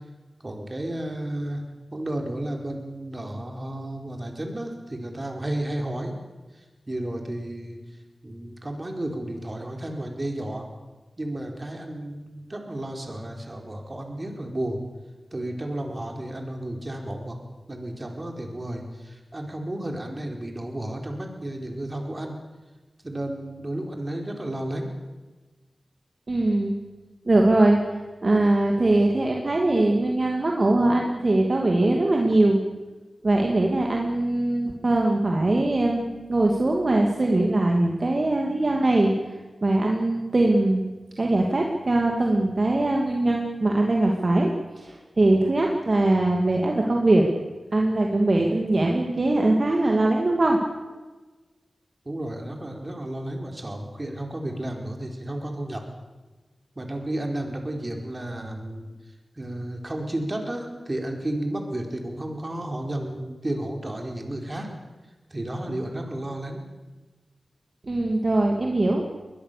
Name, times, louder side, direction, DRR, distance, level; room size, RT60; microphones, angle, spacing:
voice 1, 0.4-1.6 1.9-6.2 6.6-7.8 8.2-10.7 11.2-14.8 15.3-17.4 17.7-22.4 23.0-24.9 52.0-55.8 56.8-58.9 59.4-64.7 65.3-66.7, right 1 dB, 30° right, 3 dB, 4.4 m, -32 dB
voice 2, 26.3-26.8 27.3-27.8 28.2-32.6 33.2-39.1 39.6-40.8 41.2-44.5 44.8-47.2 47.7-50.6 67.9-69.2, right 2 dB, 45° right, 0 dB, 2.6 m, -21 dB
22.0 x 20.5 x 6.9 m, 1.2 s
wide cardioid pair, 70°, 0 cm